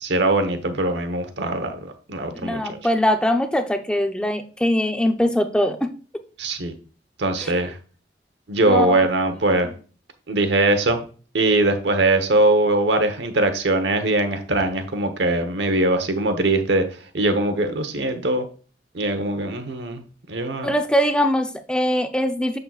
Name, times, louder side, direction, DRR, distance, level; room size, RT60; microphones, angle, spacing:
voice 1, 0.0-2.8 6.4-6.7 7.2-7.7 8.5-9.7 10.3-11.0 11.3-16.8 17.1-18.4 18.9-20.0 20.3-20.7, right 2 dB, 75° right, 8 dB, 1.1 m, -21 dB
voice 2, 2.3-5.9 7.4-7.5 8.7-9.0 9.3-9.4 20.6-22.6, equal, 5° left, 6 dB, 0.6 m, -22 dB
7.6 x 6.7 x 2.4 m, 0.38 s
head